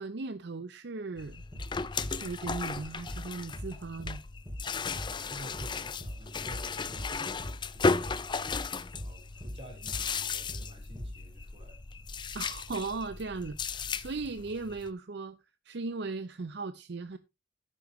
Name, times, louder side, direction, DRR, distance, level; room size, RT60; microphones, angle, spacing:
voice 1, 0.0-1.4 2.1-4.2 12.3-15.4 15.7-17.2, right 3 dB, 65° right, 0.6 m, -37 dB
sound 1, 1.2-14.9, left 4 dB, 25° left, 0.5 m, -35 dB
sound 2, 1.5-1.7 2.0-2.2 2.4-2.6 3.1-3.3 3.5-3.7 4.0-4.2 4.5-4.7 4.9-5.1 5.5-5.7 6.0-6.2 6.5-6.7 6.9-7.1 7.4-7.6 8.0-8.2 8.5-8.7 8.9-9.1 9.4-9.6 9.9-10.1 10.5-10.7 11.0-11.2, equal, 15° right, 5.1 m, -40 dB
voice 2, 4.9-11.8 12.1-12.3, equal, 35° right, 3.9 m, -51 dB
11.5 x 9.8 x 3.1 m
head